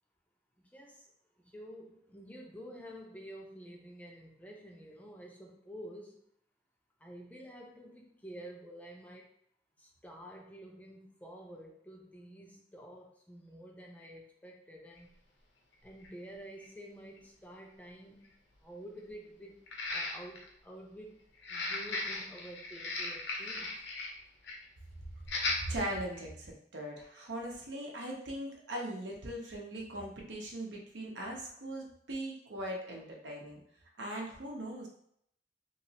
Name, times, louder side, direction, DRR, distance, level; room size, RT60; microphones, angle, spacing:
voice 1, 0.6-1.1 1.4-6.3 7.0-9.3 9.8-15.1 15.8-18.3 18.6-23.9, right 1 dB, 10° left, -1 dB, 0.4 m, -50 dB
sound 1, 15.0-15.1 16.0-16.1 16.6-16.7 19.7-20.5 21.4-24.1 24.4-24.6 25.2-25.6 26.1-26.3, left 2 dB, 70° left, 0.7 m, -37 dB
voice 2, 25.7-33.6 34.0-34.9, right 1 dB, 80° right, -1 dB, 0.8 m, -40 dB
3.1 x 3.0 x 2.8 m, 0.70 s
head